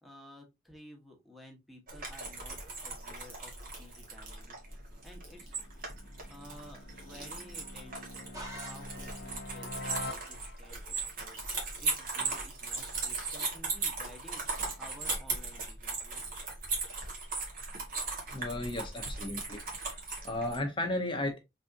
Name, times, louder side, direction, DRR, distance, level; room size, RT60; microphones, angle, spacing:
voice 1, 0.0-4.6 5.0-5.6 6.1-16.2, left 1 dB, ahead, 1.2 m, -54 dB
sound 1, 1.9-20.6, right 4 dB, 50° right, 1.5 m, -38 dB
sound 2, 4.4-10.9, left 2 dB, 60° left, 0.6 m, -46 dB
sound 3, 8.3-9.4, right 1 dB, 20° right, 1.3 m, -46 dB
voice 2, 18.3-19.6 20.0-21.4, left 1 dB, 30° left, 0.8 m, -34 dB
4.1 x 3.5 x 2.6 m
head